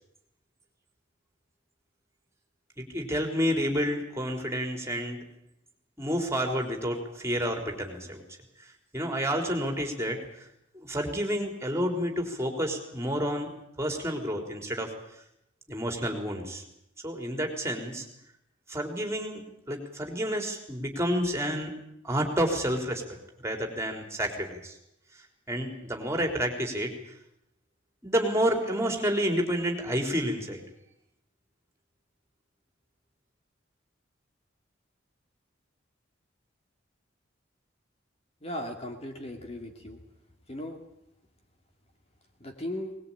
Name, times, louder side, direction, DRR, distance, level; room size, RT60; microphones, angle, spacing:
voice 1, 2.8-5.2 6.0-8.2 8.9-10.4 10.7-14.9 15.7-16.6 17.0-18.0 18.7-21.7 22.0-23.0 23.4-24.7 25.5-26.9 28.0-30.6, equal, 15° right, 3 dB, 3.9 m, -29 dB
voice 2, 38.4-40.0 40.5-40.8 42.4-42.9, left 1 dB, 35° left, 3 dB, 2.6 m, -37 dB
22.0 x 20.5 x 8.9 m, 0.76 s
head